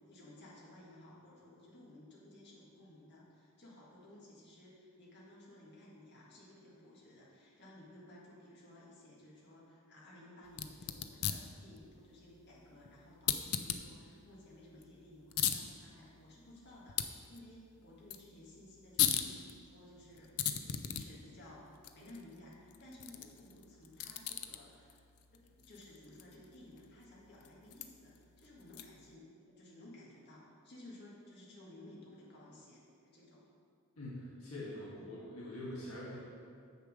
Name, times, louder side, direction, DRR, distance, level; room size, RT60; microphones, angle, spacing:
voice 1, 0.0-21.7 21.9-25.0 25.3-32.8 33.1-33.4, left 1 dB, 50° left, -5 dB, 1.9 m, -56 dB
sound 1, 10.5-29.1, left 10 dB, 85° left, 0.5 m, -41 dB
voice 2, 34.0-36.2, left 1 dB, 70° left, -6 dB, 1.7 m, -44 dB
7.5 x 6.7 x 5.1 m, 2.4 s
head